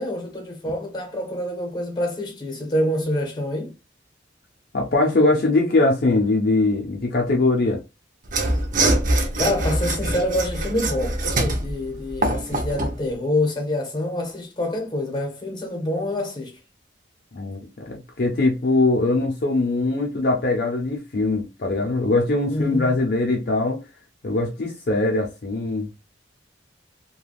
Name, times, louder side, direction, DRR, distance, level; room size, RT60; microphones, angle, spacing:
voice 1, 0.0-3.7 9.4-16.6 22.5-22.9, left 1 dB, 20° left, 0.9 m, -26 dB
voice 2, 4.7-7.8 17.3-17.6 17.9-23.8 24.2-25.9, left 2 dB, 50° left, 0.5 m, -21 dB
Mechanisms / Sawing, 8.3-13.0, right 2 dB, 45° right, 0.6 m, -23 dB
3.3 x 2.3 x 2.3 m
head